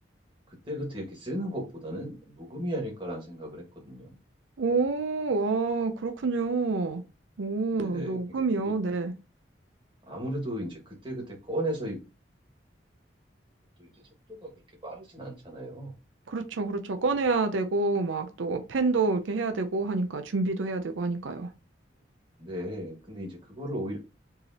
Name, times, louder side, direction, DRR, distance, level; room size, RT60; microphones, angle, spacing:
voice 1, 0.5-4.2 7.7-8.7 10.1-12.0 13.8-13.9 14.4-14.5 14.8-15.9 22.4-24.0, equal, 25° right, 1.7 m, -36 dB
voice 2, 4.6-7.0 7.4-9.1 16.3-21.5, right 3 dB, 90° right, 0.5 m, -28 dB
4.5 x 3.3 x 2.9 m
head